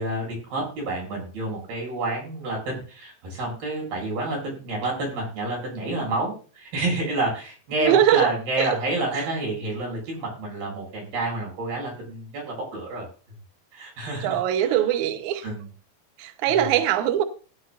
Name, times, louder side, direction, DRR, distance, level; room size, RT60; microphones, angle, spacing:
voice 1, 0.0-13.1 13.7-14.8 15.4-15.7 16.5-16.6, right 2 dB, 55° right, 8.9 m, -29 dB
voice 2, 7.8-8.3 8.6-8.8 9.1-9.2 14.2-15.4 16.2-17.2, right 11 dB, 90° right, 1.7 m, -22 dB
18.0 x 10.5 x 2.6 m
omnidirectional pair, 5.3 m